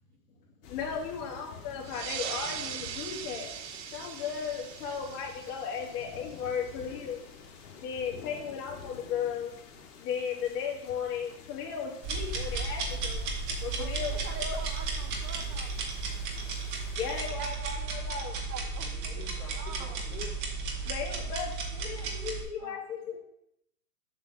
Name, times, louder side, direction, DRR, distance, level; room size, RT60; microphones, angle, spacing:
sound 1, 0.6-17.3, left 6 dB, 65° left, 1.8 m, -50 dB
voice 1, 0.6-3.5 3.9-7.2 7.7-9.5 10.0-13.3 13.6-14.6 16.9-17.5 17.9-18.4 20.8-23.2, left 7 dB, 35° left, -3 dB, 2.4 m, -35 dB
sound 2, 1.8-6.9, right 9 dB, 50° right, 0.7 m, -41 dB
sound 3, 12.0-22.4, right 4 dB, 30° right, 1.2 m, -34 dB
voice 2, 13.8-15.8 17.5-17.8 18.5-19.1 19.5-20.0 22.6-22.8, right 6 dB, 85° right, 6 dB, 1.5 m, -45 dB
voice 3, 18.8-20.9, left 5 dB, 20° left, -14 dB, 2.8 m, -48 dB
7.4 x 3.9 x 6.3 m, 0.77 s
supercardioid pair, 165°, 46 cm